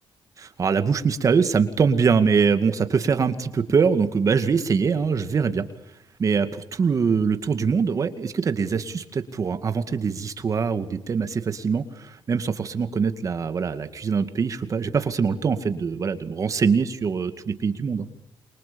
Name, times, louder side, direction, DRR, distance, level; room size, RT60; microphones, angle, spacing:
voice 1, 0.4-5.7 6.2-18.1, right 5 dB, 40° right, 9 dB, 2.2 m, -23 dB
29.0 x 24.5 x 7.0 m, 0.86 s
cardioid pair, 150°, 9 cm